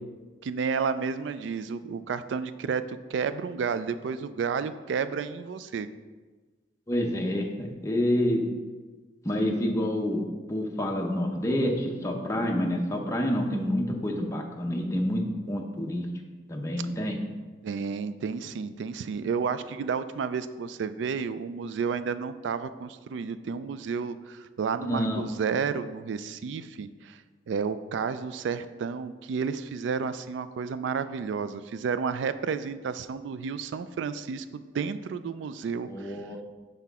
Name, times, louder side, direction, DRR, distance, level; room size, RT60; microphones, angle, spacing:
voice 1, 0.4-5.9 17.6-27.2 27.5-36.2, right 6 dB, 80° right, 13 dB, 0.3 m, -31 dB
voice 2, 6.9-8.4 9.2-10.2 10.5-16.1 16.5-17.2 24.8-25.2 35.9-36.4, equal, 15° left, 0 dB, 0.6 m, -28 dB
5.8 x 5.4 x 3.6 m, 1.3 s
head